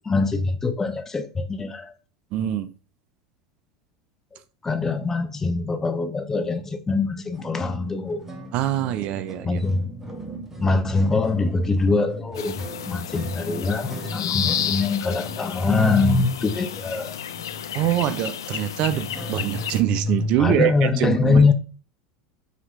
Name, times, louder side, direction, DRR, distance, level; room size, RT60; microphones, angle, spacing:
voice 1, 0.0-1.9 4.6-8.2 9.4-9.9 10.6-12.6 12.9-17.2 20.4-21.5, left 3 dB, 20° left, 0.7 m, -23 dB
voice 2, 2.3-2.7 8.5-9.6 17.7-21.5, right 11 dB, 55° right, 0.5 m, -24 dB
sound 1, 7.3-20.4, left 1 dB, 10° right, 1.0 m, -36 dB
sound 2, 12.3-19.8, left 9 dB, 90° left, 0.3 m, -32 dB
4.9 x 2.9 x 3.1 m
hypercardioid pair, 95°, 2 cm